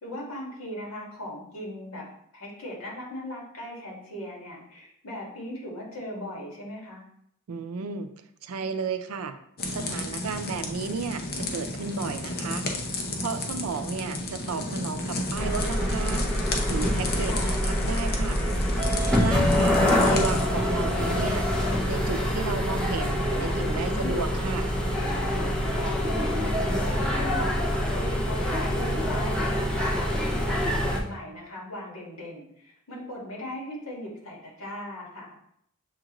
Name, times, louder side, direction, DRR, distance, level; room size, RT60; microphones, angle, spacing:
voice 1, 0.0-2.1 2.3-7.0 17.2-17.6 23.9-24.3 25.5-27.6 27.9-35.3, left 1 dB, 75° left, -3 dB, 1.7 m, -38 dB
voice 2, 7.5-8.1 8.4-9.4 9.7-11.2 11.5-12.7 13.2-16.3 16.7-18.4 19.2-21.4 21.9-24.7, right 4 dB, 85° right, 9 dB, 0.4 m, -33 dB
sound 1, 9.6-20.4, left 2 dB, 45° left, 0.7 m, -33 dB
sound 2, 15.3-31.0, equal, 5° left, 0.6 m, -25 dB
7.1 x 2.5 x 3.0 m, 0.70 s
head